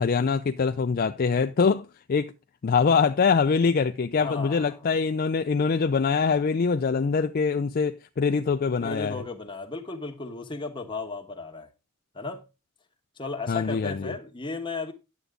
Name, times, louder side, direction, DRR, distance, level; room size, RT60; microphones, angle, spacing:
voice 1, 0.0-2.3 2.6-9.2 13.5-14.1, left 5 dB, 45° left, 0.4 m, -24 dB
voice 2, 4.2-4.8 8.8-11.7 12.1-12.4 13.2-14.9, left 3 dB, 25° left, 1.3 m, -35 dB
9.7 x 8.1 x 3.6 m
head